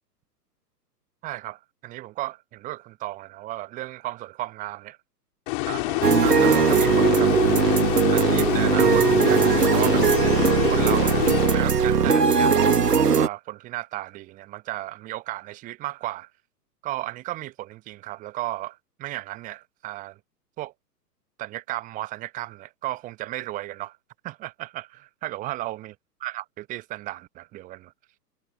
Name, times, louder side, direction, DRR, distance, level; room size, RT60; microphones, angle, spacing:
voice 1, 1.2-5.0 5.6-7.4 8.1-10.0 10.7-16.3 16.8-20.2 20.6-20.7 21.4-24.0 24.2-25.9 26.2-27.9, right 16 dB, 15° right, 1.1 m, -34 dB
sound 1, 5.5-12.1, left 33 dB, 30° left, 2.7 m, -26 dB
sound 2, 6.0-13.3, right 6 dB, 70° right, 1.7 m, -19 dB
figure-of-eight pair, 115°, 49 cm